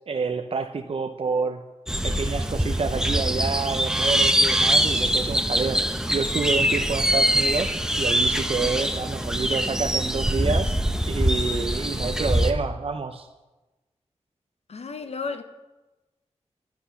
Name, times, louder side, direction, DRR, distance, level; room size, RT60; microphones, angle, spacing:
voice 1, 0.1-1.6 2.0-5.8 6.1-10.8 11.1-13.3, right 4 dB, 55° right, 6 dB, 0.6 m, -28 dB
sound 1, 1.9-12.5, equal, 5° right, 0.9 m, -23 dB
voice 2, 14.7-15.4, left 4 dB, 60° left, 8 dB, 0.7 m, -33 dB
10.0 x 10.0 x 5.8 m, 1.1 s
wide cardioid pair, 65°, 12 cm